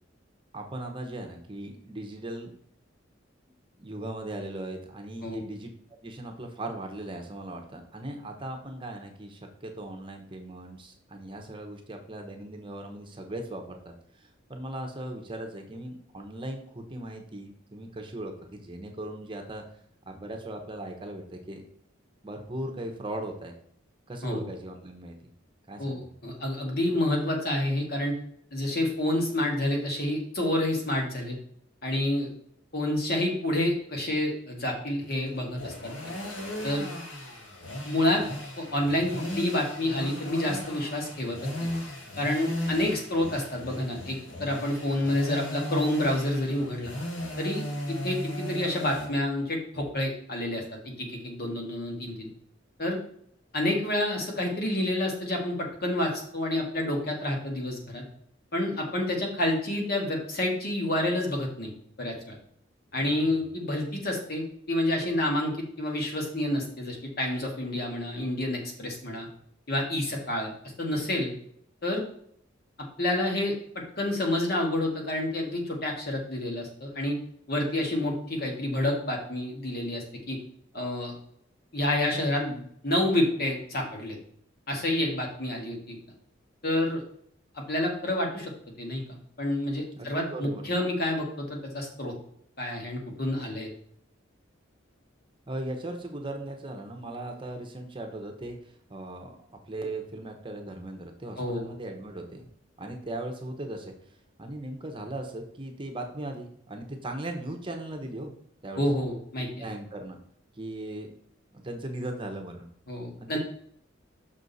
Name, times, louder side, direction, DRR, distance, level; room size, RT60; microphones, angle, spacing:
voice 1, 0.5-2.5 3.8-5.7 6.0-19.6 20.1-21.6 22.2-23.5 24.1-25.1 25.7-26.1 62.9-63.5 90.0-90.6 95.5-102.5 102.8-103.9 104.4-108.3 108.6-108.8 109.6-110.2 110.5-111.1 111.5-112.7 113.2-113.4, right 1 dB, 25° right, 3 dB, 1.0 m, -38 dB
voice 2, 25.8-28.2 28.5-31.4 31.8-32.3 32.7-35.9 36.6-36.9 37.8-38.2 38.6-41.5 42.2-46.9 47.4-52.3 52.8-53.0 53.5-58.0 58.5-61.7 62.0-62.4 62.9-69.3 69.7-70.5 70.8-71.3 71.8-72.0 73.0-73.5 74.0-77.2 77.5-80.4 80.7-81.1 81.7-84.2 84.7-86.0 86.6-87.0 87.5-88.5 88.8-89.0 89.4-92.1 92.6-93.7 101.4-101.7 108.7-109.6 112.9-113.4, left 1 dB, 50° left, 1 dB, 1.8 m, -29 dB
sound 1, 35.0-49.1, left 1 dB, 75° left, 1.8 m, -36 dB
6.3 x 6.0 x 4.1 m, 0.66 s
head